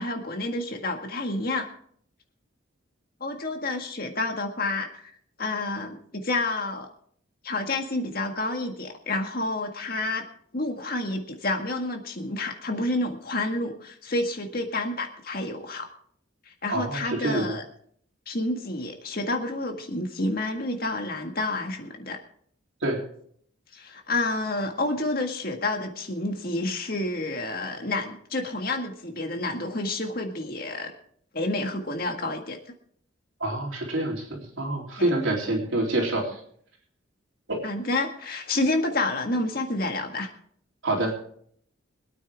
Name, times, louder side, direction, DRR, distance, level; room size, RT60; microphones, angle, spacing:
voice 1, 0.0-1.7 3.2-5.1 5.4-6.9 7.4-10.2 10.5-15.9 16.6-17.6 18.3-22.2 23.7-30.9 31.3-32.6 35.0-35.1 37.6-40.3, left 2 dB, 50° left, 4 dB, 1.9 m, -29 dB
voice 2, 16.7-17.5 22.8-23.0 33.4-36.4 37.5-37.6 40.8-41.1, right 1 dB, 80° right, 0 dB, 3.6 m, -27 dB
24.5 x 9.1 x 3.6 m, 0.63 s
head